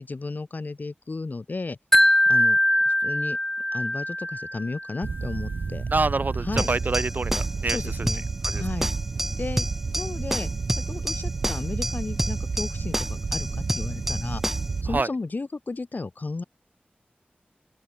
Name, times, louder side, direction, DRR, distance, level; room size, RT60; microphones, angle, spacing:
voice 1, 0.0-1.8 2.3-2.6 2.9-3.4 3.7-5.8 6.4-6.7 7.7-8.3 8.5-8.9 9.3-9.7 10.0-13.5 13.7-14.4 14.8-16.4, left 3 dB, 55° left, 2.5 m, -33 dB
Wind chime, 1.9-5.0, left 1 dB, 10° left, 0.5 m, -22 dB
sound 1, 5.0-15.0, right 4 dB, 75° right, 0.7 m, -30 dB
voice 2, 5.9-7.8 8.4-8.6 14.9-15.1, right 3 dB, 55° right, 1.4 m, -26 dB
sound 2, 6.6-14.8, right 1 dB, 10° right, 1.0 m, -31 dB
open air
wide cardioid pair, 70°, 4 cm